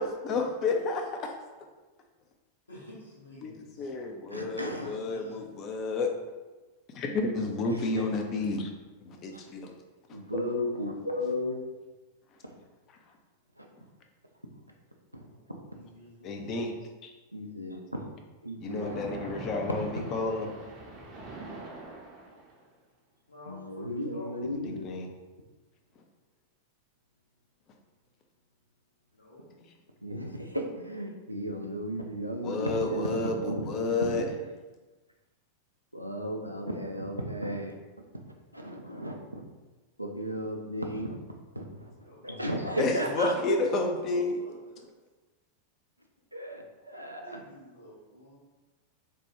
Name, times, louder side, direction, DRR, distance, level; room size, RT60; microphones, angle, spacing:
voice 1, 0.0-1.3 3.4-6.1 6.9-8.7 9.0-9.7 10.4-10.6 16.2-16.7 17.0-17.1 18.6-20.5 24.8-25.1 32.4-34.2 42.8-44.3, left 3 dB, 35° left, 3 dB, 0.4 m, -30 dB
voice 2, 2.7-5.3 15.2-16.6 18.8-19.1 23.3-24.4 29.1-29.5 42.0-44.9 46.9-48.3, left 1 dB, 75° left, -6 dB, 1.0 m, -48 dB
voice 3, 4.3-5.0 7.7-8.1 9.3-9.4 10.1-11.6 12.4-12.6 13.6-13.7 15.1-15.8 17.3-18.0 18.4-19.0 23.5-24.9 30.0-34.4 35.9-37.7 38.5-39.4 40.0-43.4 46.3-47.4, equal, 90° right, 2 dB, 0.3 m, -35 dB
Splash splatter, 18.7-22.7, right 2 dB, 30° right, 0.6 m, -42 dB
3.2 x 2.1 x 2.9 m, 1.2 s
figure-of-eight pair, 90°, 0 cm